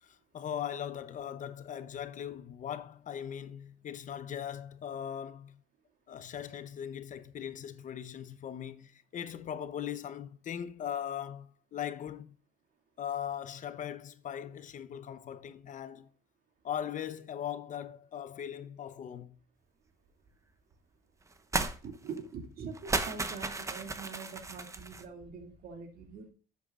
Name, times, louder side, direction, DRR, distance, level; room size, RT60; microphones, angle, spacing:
voice 1, 0.0-5.6 6.1-12.4 13.0-16.1 16.6-19.4, left 9 dB, 50° left, 0.8 m, -39 dB
sound 1, 21.5-21.8 22.1-22.2 22.7-25.0, right 3 dB, 20° right, 1.0 m, -34 dB
voice 2, 21.8-26.3, right 5 dB, 60° right, 2.5 m, -44 dB
11.0 x 8.1 x 2.5 m
cardioid pair, 110°, 17 cm